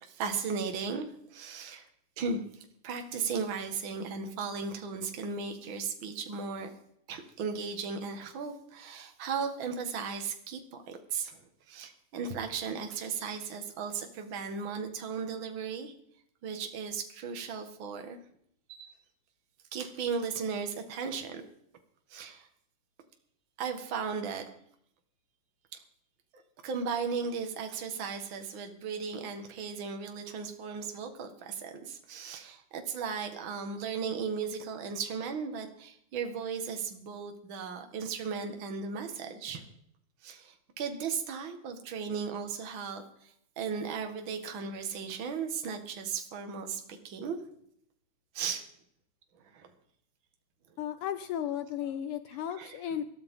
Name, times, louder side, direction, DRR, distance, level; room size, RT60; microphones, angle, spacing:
voice 1, 0.0-1.9 2.2-2.4 2.8-6.7 7.1-10.6 10.9-11.4 11.7-15.9 16.4-18.2 18.7-18.9 19.7-21.4 22.1-22.5 23.6-24.5 25.7-25.8 26.6-39.6 40.2-43.3 43.6-47.4 48.3-48.6 49.5-49.7 52.6-52.8, right 5 dB, 50° right, 5 dB, 2.0 m, -36 dB
voice 2, 50.8-53.1, left 10 dB, 85° left, 11 dB, 1.2 m, -34 dB
20.5 x 13.5 x 3.7 m, 0.70 s
omnidirectional pair, 3.4 m